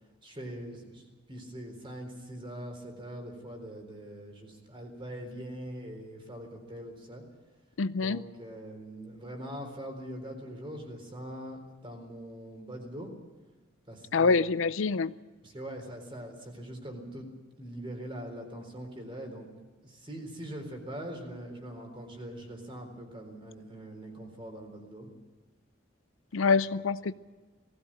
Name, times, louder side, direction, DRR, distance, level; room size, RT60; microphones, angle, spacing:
voice 1, 0.2-7.2 8.0-13.1 13.9-14.5 15.4-17.3 17.6-19.5 19.8-25.1, right 1 dB, 25° right, 3 dB, 4.1 m, -42 dB
voice 2, 7.8-8.2 14.1-15.1 26.3-27.1, left 4 dB, 75° left, 15 dB, 0.5 m, -26 dB
19.0 x 16.0 x 8.9 m, 1.3 s
head